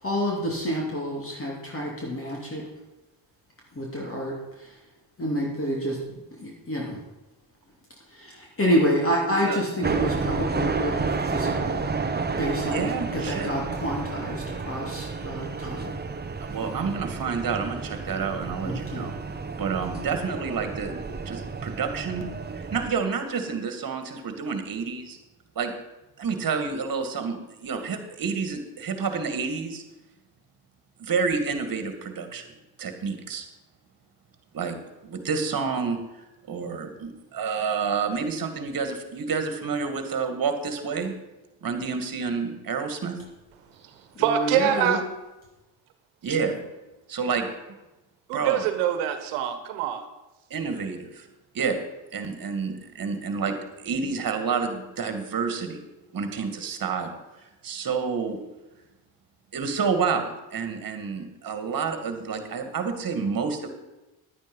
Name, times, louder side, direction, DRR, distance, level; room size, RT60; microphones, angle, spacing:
voice 1, 0.0-2.6 3.7-4.7 5.2-6.0 6.4-7.0 8.1-11.8 12.4-15.9 18.6-19.1 44.2-45.0, equal, 25° left, -2 dB, 3.0 m, -28 dB
voice 2, 9.2-9.6 12.7-13.5 16.4-19.1 19.6-22.3 22.6-25.2 25.6-25.7 26.2-29.8 31.0-33.5 34.5-34.8 35.0-41.1 41.6-43.2 46.2-46.6 47.1-47.5 48.3-48.7 50.5-51.3 51.5-51.8 52.1-55.8 56.1-58.4 59.5-63.7, right 5 dB, 45° right, 7 dB, 2.2 m, -29 dB
sound 1, 9.8-22.9, right 4 dB, 20° right, 1.0 m, -31 dB
voice 3, 44.2-45.0 48.3-50.0, right 10 dB, 90° right, 9 dB, 1.5 m, -24 dB
11.0 x 9.3 x 5.5 m, 1.0 s
supercardioid pair, 80°, 49 cm